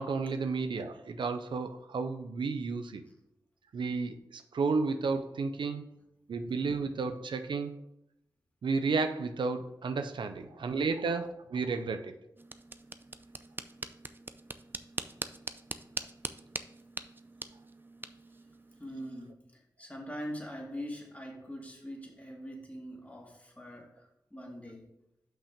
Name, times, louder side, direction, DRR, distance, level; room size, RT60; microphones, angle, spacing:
voice 1, 0.0-3.0 3.7-5.9 6.3-7.7 8.6-12.1, right 4 dB, 85° right, 8 dB, 0.5 m, -32 dB
sound 1, 12.4-19.3, right 2 dB, 25° right, 0.5 m, -43 dB
voice 2, 18.8-24.9, equal, 15° left, -1 dB, 2.2 m, -43 dB
5.8 x 5.4 x 5.0 m, 0.81 s
cardioid pair, 55°, 8 cm